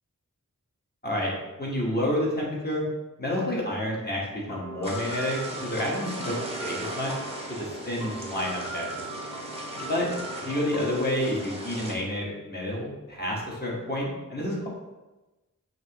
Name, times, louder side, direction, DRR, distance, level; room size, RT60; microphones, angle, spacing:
voice 1, 1.6-2.8 3.2-7.1 7.5-9.0 9.9-10.1 10.4-14.7, left 1 dB, 30° left, -4 dB, 1.4 m, -29 dB
sound 1, 4.5-12.3, right 2 dB, 65° left, 1.3 m, -40 dB
sound 2, 4.8-12.0, right 1 dB, 20° right, 0.9 m, -38 dB
5.7 x 2.9 x 3.0 m, 1.1 s
wide cardioid pair, 65°, 33 cm